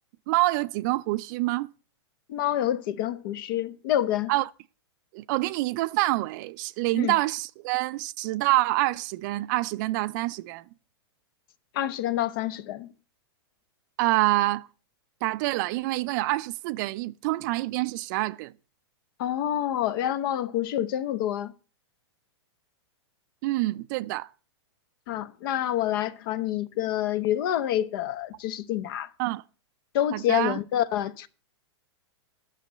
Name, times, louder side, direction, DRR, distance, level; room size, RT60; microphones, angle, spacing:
voice 1, 0.3-1.7 4.3-4.5 5.1-10.6 14.0-14.7 15.2-18.5 23.4-24.3 29.2-29.4 30.1-30.6, right 19 dB, 45° right, 0.5 m, -26 dB
voice 2, 2.3-4.3 6.9-7.1 11.7-12.9 19.2-21.5 25.1-29.1 29.9-31.3, left 12 dB, 50° left, 0.8 m, -27 dB
11.0 x 6.4 x 7.7 m
hypercardioid pair, 135°, 14 cm